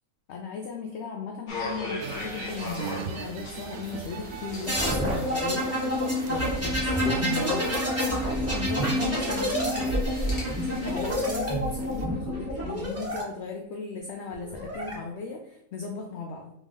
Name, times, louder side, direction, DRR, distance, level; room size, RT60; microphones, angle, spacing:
voice 1, 0.3-5.7 6.3-10.0 10.6-16.5, left 4 dB, 65° left, 2 dB, 0.7 m, -37 dB
sound 1, 1.5-10.9, left 2 dB, 40° left, 0.9 m, -40 dB
sound 2, 2.0-12.1, right 5 dB, 70° right, 0.9 m, -41 dB
sound 3, 4.7-13.2 14.3-14.9, equal, 10° right, 1.0 m, -28 dB
3.5 x 3.1 x 3.7 m, 0.83 s
omnidirectional pair, 1.5 m